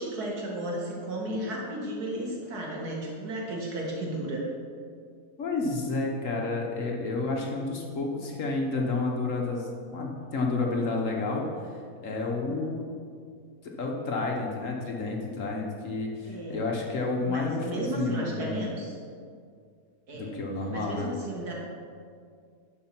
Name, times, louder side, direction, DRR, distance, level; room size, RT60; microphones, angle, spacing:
voice 1, 0.0-4.5 12.5-12.8 16.2-16.6 17.2-19.0 20.1-20.3 20.7-21.5, right 1 dB, 85° right, -2 dB, 2.2 m, -34 dB
voice 2, 5.4-11.7 12.0-12.8 13.6-18.5 20.1-21.1, left 3 dB, 60° left, 0 dB, 1.3 m, -30 dB
11.5 x 4.7 x 5.9 m, 2.2 s
omnidirectional pair, 1.6 m